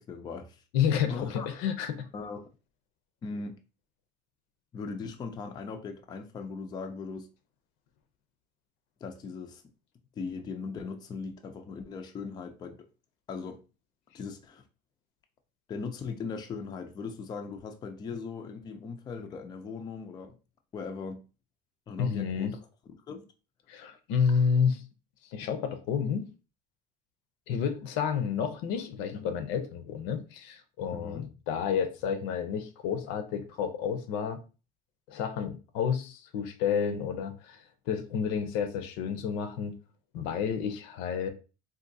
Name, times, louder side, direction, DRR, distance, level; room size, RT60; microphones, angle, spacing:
voice 1, 0.0-0.6 1.1-1.6 2.1-2.5 3.2-3.6 4.7-7.3 9.0-9.6 10.2-12.9 13.3-13.6 14.1-14.6 15.7-20.4 20.7-21.2 21.9-22.5 23.1-23.3 30.9-31.3, left 5 dB, 20° left, 0.3 m, -39 dB
voice 2, 0.7-2.1 22.0-22.6 23.7-24.8 25.3-26.3 27.5-34.4 35.1-39.8 40.1-41.3, left 7 dB, 85° left, 0.6 m, -30 dB
3.8 x 2.6 x 2.6 m
cardioid pair, 155°, 19 cm